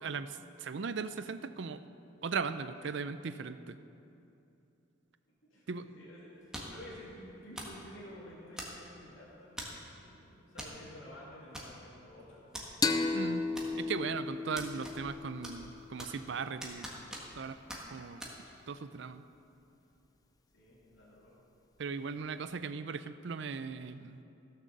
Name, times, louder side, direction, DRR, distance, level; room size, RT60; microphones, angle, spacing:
voice 1, 0.0-1.8 2.2-3.8 5.7-5.8 13.1-16.9 17.4-17.6 17.9-18.2 18.7-19.2 21.8-24.2, right 5 dB, 60° right, 12 dB, 0.5 m, -38 dB
voice 2, 5.5-12.4 20.5-21.4, left 1 dB, 75° left, -7 dB, 2.5 m, -51 dB
sound 1, 6.5-6.9 7.6-7.8 8.6-9.0 9.6-9.9 10.6-10.8 11.0-11.1 11.5-12.0 12.5-12.7 13.6-14.0 14.6-15.2 15.4-16.3 16.6-17.4 17.7-17.8 18.2-18.3, equal, 5° right, 1.5 m, -43 dB
sound 2, 12.8-16.2, left 3 dB, 20° left, 0.5 m, -34 dB
16.0 x 6.6 x 6.6 m, 2.8 s
head